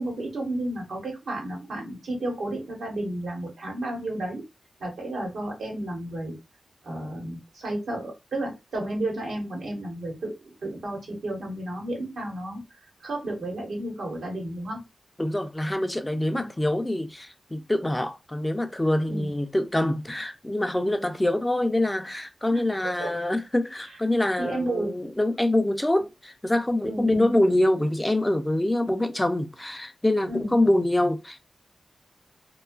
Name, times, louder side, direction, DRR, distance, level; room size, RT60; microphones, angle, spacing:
voice 1, 0.0-4.4 4.8-6.4 6.8-12.6 13.0-14.8 16.3-16.5 19.1-19.3 22.5-22.6 23.0-23.1 24.4-24.9 26.8-27.3 30.3-30.5, right 1 dB, 80° right, 1.1 m, -32 dB
voice 2, 15.2-31.5, left 1 dB, 10° left, 0.3 m, -25 dB
2.6 x 2.3 x 2.3 m
wide cardioid pair, 125°, 0 cm